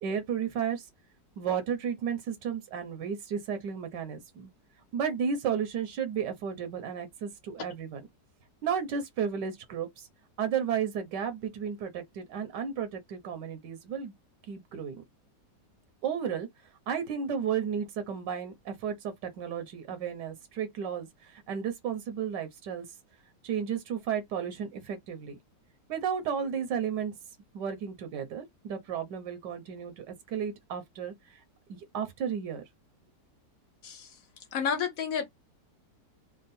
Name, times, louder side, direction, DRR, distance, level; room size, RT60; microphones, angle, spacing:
voice 1, 0.0-0.9 1.4-4.5 4.9-8.1 8.6-10.1 10.4-14.1 14.5-15.0 16.0-16.5 16.9-22.9 23.4-25.4 25.9-27.1 27.5-31.4 31.7-32.6, right 7 dB, 80° right, 1.4 m, -33 dB
voice 2, 33.8-34.2 34.5-35.3, left 7 dB, 55° left, 1.3 m, -30 dB
3.6 x 2.1 x 4.1 m
omnidirectional pair, 1.9 m